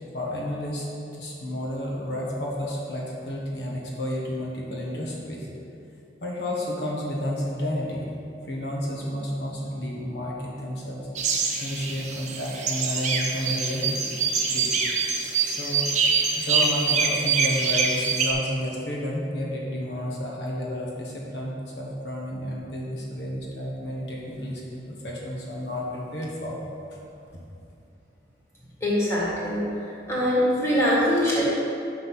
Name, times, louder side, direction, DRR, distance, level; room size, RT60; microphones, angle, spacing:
voice 1, 0.1-0.9 1.1-5.5 6.2-8.1 8.5-14.0 14.3-14.7 15.2-26.6, equal, 75° left, -3 dB, 1.4 m, -31 dB
sound 1, 11.2-18.3, right 5 dB, 40° right, 0.6 m, -25 dB
voice 2, 28.8-29.6 30.1-31.4, equal, 15° left, -7 dB, 1.7 m, -22 dB
5.7 x 5.1 x 6.1 m, 2.7 s
head